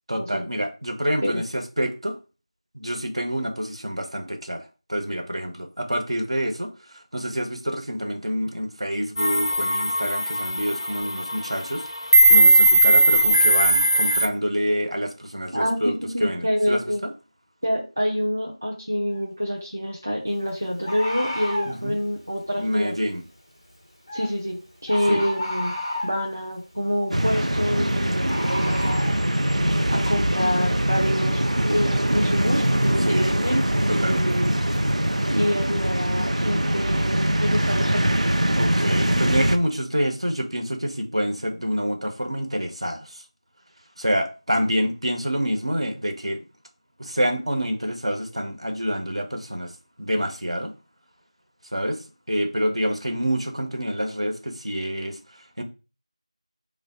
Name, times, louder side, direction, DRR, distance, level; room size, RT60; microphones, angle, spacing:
voice 1, 0.1-2.2 2.7-11.9 12.3-15.9 16.2-17.1 21.7-22.0 22.6-23.2 25.1-25.2 33.0-33.4 33.9-34.4 38.6-43.2 44.0-46.4 47.0-49.7 50.0-50.7 51.7-55.6, equal, 60° right, 0.7 m, -27 dB
sound 1, 9.2-14.3, right 1 dB, 50° left, 0.4 m, -18 dB
voice 2, 15.5-17.0 17.6-22.9 24.1-25.7 26.0-29.1 29.9-31.4 31.7-34.5 35.3-38.1, equal, 25° right, 0.4 m, -27 dB
Bird, 19.1-19.3 20.8-21.8 24.1-24.3 24.9-26.2 28.3-29.1, left 1 dB, 15° left, 0.7 m, -30 dB
sound 2, 27.1-39.6, right 1 dB, 90° right, 0.4 m, -22 dB
3.4 x 2.0 x 4.0 m
figure-of-eight pair, 175°, 3 cm